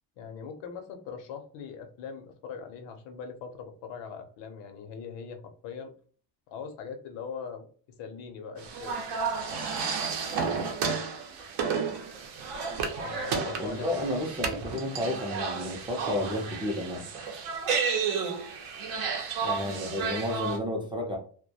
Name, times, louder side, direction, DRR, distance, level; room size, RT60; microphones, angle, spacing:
voice 1, 0.2-5.9 6.5-9.0 13.0-14.2, left 6 dB, 90° left, 6 dB, 0.7 m, -41 dB
sound 1, 8.6-20.6, right 5 dB, 65° right, 0.6 m, -32 dB
voice 2, 13.6-17.0 19.4-21.2, left 1 dB, 10° right, 0 dB, 0.4 m, -31 dB
2.2 x 2.1 x 2.7 m, 0.44 s
cardioid pair, 140°, 42 cm